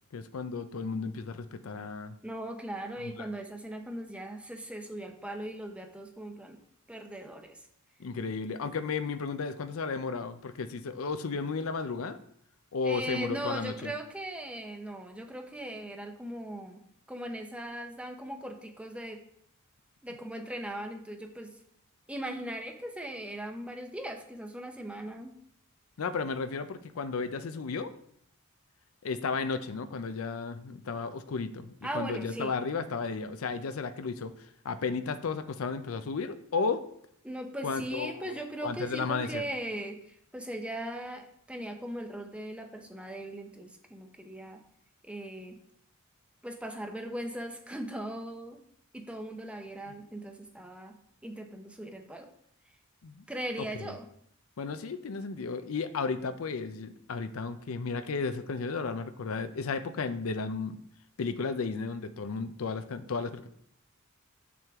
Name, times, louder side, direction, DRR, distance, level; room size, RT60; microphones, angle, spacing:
voice 1, 0.1-2.1 3.0-3.3 8.0-12.2 12.7-13.9 26.0-27.9 29.0-34.3 34.6-36.8 37.6-39.4 53.0-53.2 53.6-53.9 54.6-60.8 61.2-63.5, left 4 dB, 75° left, 11 dB, 0.5 m, -34 dB
voice 2, 2.2-6.6 6.9-7.6 12.8-16.8 17.1-19.2 20.0-21.5 22.1-25.4 31.8-32.5 37.2-44.6 45.1-45.6 46.4-48.6 48.9-51.0 51.2-52.3 53.3-54.1, right 1 dB, 5° right, 4 dB, 0.7 m, -39 dB
7.4 x 6.0 x 3.5 m, 0.70 s
head